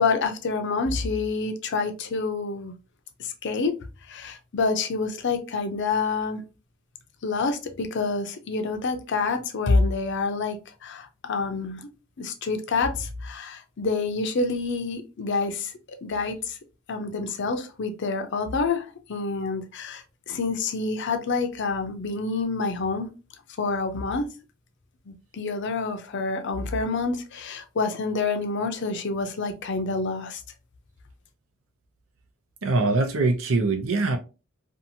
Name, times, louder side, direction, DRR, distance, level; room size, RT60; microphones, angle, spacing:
voice 1, 0.0-2.7 3.2-3.7 4.1-6.4 7.2-11.9 12.2-15.7 16.0-16.6 16.9-23.1 23.6-24.3 25.1-30.4, left 4 dB, 60° left, 0.5 m, -27 dB
voice 2, 32.6-34.2, right 3 dB, 85° right, 0.7 m, -23 dB
2.7 x 2.4 x 2.7 m
head